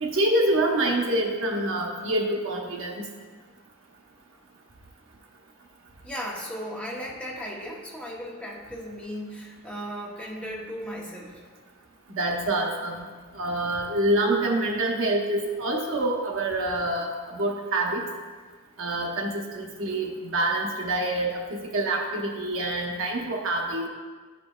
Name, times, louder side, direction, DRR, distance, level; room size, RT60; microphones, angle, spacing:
voice 1, 0.0-3.0 12.1-13.1 13.3-18.0 18.8-23.9, right 1 dB, 60° right, 0 dB, 0.9 m, -26 dB
voice 2, 6.0-11.4, equal, 5° left, -4 dB, 0.8 m, -36 dB
11.0 x 5.2 x 2.3 m, 1.5 s
head